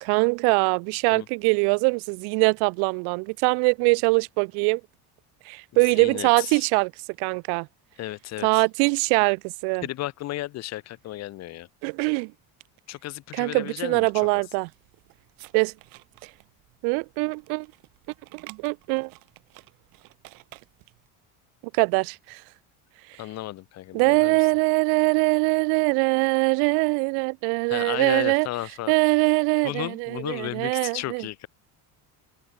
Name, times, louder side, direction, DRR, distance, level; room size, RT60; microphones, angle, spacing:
voice 1, 0.0-4.8 5.5-6.9 7.2-7.7 8.4-9.8 11.8-12.3 13.3-14.7 15.5-15.7 16.8-17.7 18.3-19.1 21.7-22.4 23.9-28.5 28.9-31.3, right 40 dB or more, 80° right, 0.8 m, -23 dB
voice 2, 5.7-6.6 8.0-8.6 9.8-11.7 12.9-14.3 23.2-24.5 27.7-28.9 29.6-31.5, left 15 dB, 45° left, 2.7 m, -34 dB
sound 1, 13.9-21.1, right 23 dB, 60° right, 6.9 m, -52 dB
cardioid pair, 175°, 38 cm